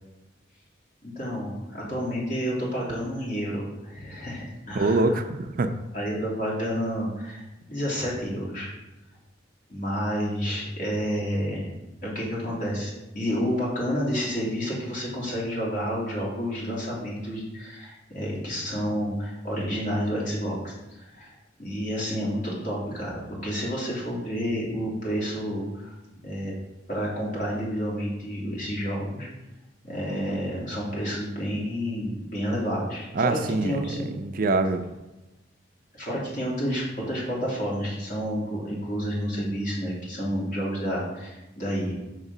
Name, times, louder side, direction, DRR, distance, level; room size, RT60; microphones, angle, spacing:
voice 1, 1.0-5.2 5.9-7.4 7.7-8.7 9.7-11.7 12.0-21.3 21.6-25.9 26.2-26.5 26.9-29.3 29.8-34.1 35.9-41.9, equal, 45° left, -5 dB, 2.8 m, -30 dB
voice 2, 4.7-5.7 33.1-33.8 34.1-34.8, right 2 dB, 50° right, 8 dB, 0.5 m, -24 dB
6.5 x 4.9 x 5.4 m, 1.0 s
head